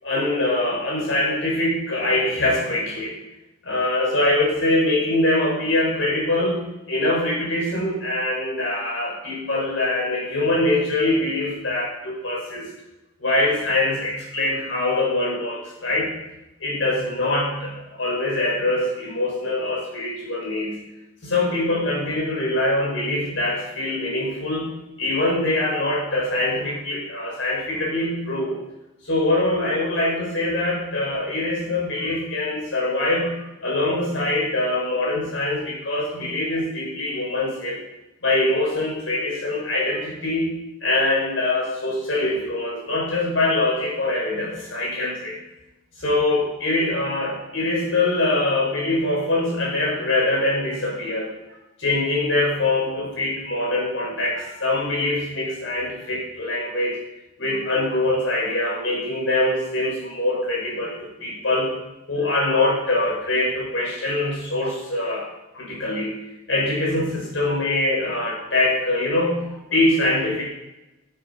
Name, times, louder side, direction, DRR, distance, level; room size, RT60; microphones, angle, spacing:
voice 1, 0.0-3.2 3.6-12.7 13.2-16.1 16.6-20.8 21.2-28.6 29.0-37.9 38.2-40.6 40.8-45.4 46.0-51.3 51.8-57.0 57.4-61.7 62.1-65.3 65.5-66.2 66.5-70.4, left 2 dB, 75° left, -4 dB, 5.7 m, -23 dB
14.5 x 13.0 x 5.5 m, 0.96 s
head